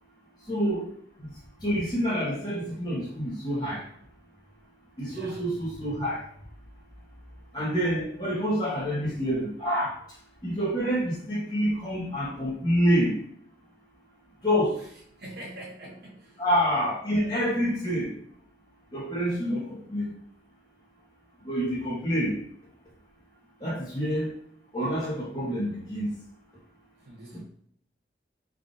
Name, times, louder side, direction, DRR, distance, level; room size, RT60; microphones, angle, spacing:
voice 1, 0.5-0.9 1.2-1.3 1.6-3.8 5.0-6.2 7.5-9.9 10.4-13.1 14.4-14.8 16.4-18.1 18.9-20.0 21.4-22.3 23.6-24.3 24.7-26.1, equal, 25° left, -9 dB, 0.8 m, -27 dB
voice 2, 5.1-5.5 15.2-16.4 27.1-27.4, right 1 dB, 65° right, -6 dB, 0.8 m, -43 dB
3.5 x 2.4 x 3.7 m, 0.64 s
head